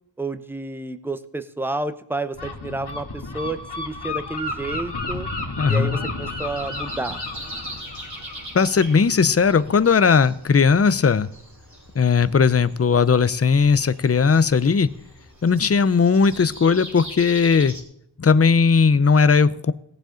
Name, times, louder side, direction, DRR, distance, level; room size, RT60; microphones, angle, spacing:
voice 1, 0.2-5.3 5.7-7.2, right 2 dB, 5° right, 11 dB, 0.8 m, -30 dB
Gull seagull, 2.3-9.9, left 2 dB, 60° left, 1.7 m, -33 dB
voice 2, 5.6-6.0 8.5-11.3 12.0-14.9 15.4-17.7 18.2-19.7, left 5 dB, 30° left, 15 dB, 0.6 m, -17 dB
Breathing, 6.2-17.8, right 1 dB, 40° right, 3.3 m, -41 dB
18.0 x 7.5 x 3.8 m, 0.72 s
wide cardioid pair, 75°, 46 cm